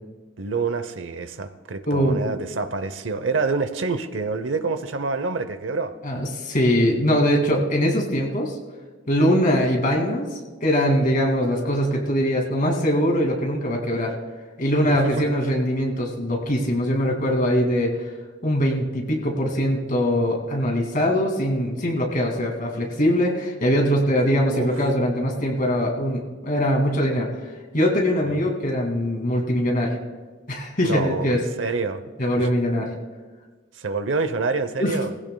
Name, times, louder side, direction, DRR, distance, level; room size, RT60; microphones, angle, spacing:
voice 1, 0.4-5.9 14.8-15.2 24.5-24.7 28.2-28.5 30.8-32.0 32.4-32.5 33.7-35.1, right 4 dB, 70° right, 11 dB, 0.8 m, -27 dB
voice 2, 1.9-2.2 6.0-8.5 9.1-10.3 10.6-14.1 14.6-18.0 18.4-27.3 27.7-30.0 30.5-31.4 32.2-32.9 34.8-34.9, equal, 45° left, 1 dB, 2.4 m, -22 dB
19.5 x 16.0 x 2.3 m, 1.4 s
head